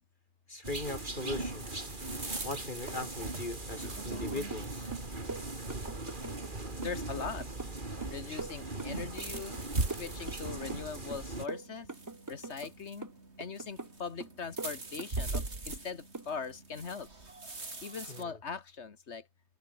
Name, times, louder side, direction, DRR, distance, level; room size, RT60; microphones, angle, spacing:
voice 1, 0.5-1.9 2.4-4.9 18.1-18.4, left 2 dB, 45° left, 3.9 m, -39 dB
sound 1, 0.6-11.4, right 2 dB, 50° right, 3.4 m, -40 dB
sound 2, 0.7-18.2, right 2 dB, 85° right, 3.9 m, -43 dB
sound 3, 4.1-4.7 4.9-6.5 6.8-9.6 9.9-10.9 11.1-12.7 13.0-13.9 14.2-15.8 16.1-16.3, right 3 dB, 20° right, 0.9 m, -43 dB
voice 2, 6.7-7.5 8.1-11.9 12.3-13.1 13.4-17.1 17.8-19.3, left 5 dB, 85° left, 1.9 m, -41 dB
omnidirectional pair, 1.1 m